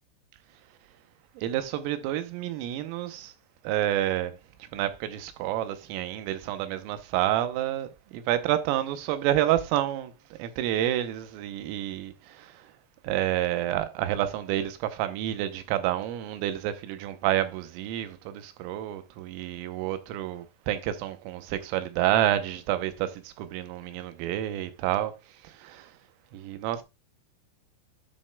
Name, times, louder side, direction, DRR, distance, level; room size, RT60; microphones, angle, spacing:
voice 1, 1.4-3.3 3.7-4.3 4.7-10.1 10.4-12.7 13.0-25.1 25.4-25.9 26.3-26.8, right 12 dB, 90° right, 3.5 m, -29 dB
10.5 x 6.5 x 2.2 m
omnidirectional pair, 5.7 m